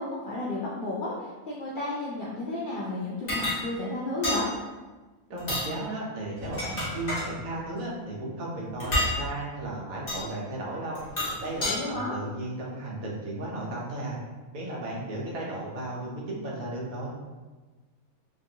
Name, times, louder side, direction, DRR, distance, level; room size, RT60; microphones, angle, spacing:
voice 1, 0.0-4.5 11.7-12.2, left 2 dB, 90° left, -6 dB, 0.4 m, -32 dB
sound 1, 3.3-3.6 4.2-4.4 5.4-5.7 6.4-7.3 8.8-9.1 10.1-10.2 11.0-11.8, left 1 dB, 30° left, 1.0 m, -29 dB
voice 2, 5.3-11.0 11.3-14.2 14.5-17.1, right 1 dB, 75° right, -4 dB, 1.2 m, -35 dB
3.0 x 2.5 x 2.7 m, 1.3 s
omnidirectional pair, 1.5 m